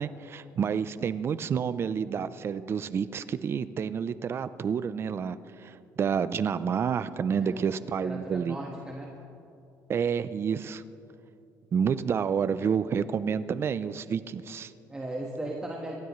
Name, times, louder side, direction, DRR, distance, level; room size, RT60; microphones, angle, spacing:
voice 1, 0.0-8.6 9.9-10.8 11.7-14.7, right 7 dB, 35° right, 13 dB, 0.5 m, -29 dB
voice 2, 8.0-9.1 14.9-16.0, right 1 dB, 15° right, -1 dB, 1.4 m, -37 dB
28.0 x 13.0 x 3.2 m, 2.6 s
cardioid pair, 130°, 7 cm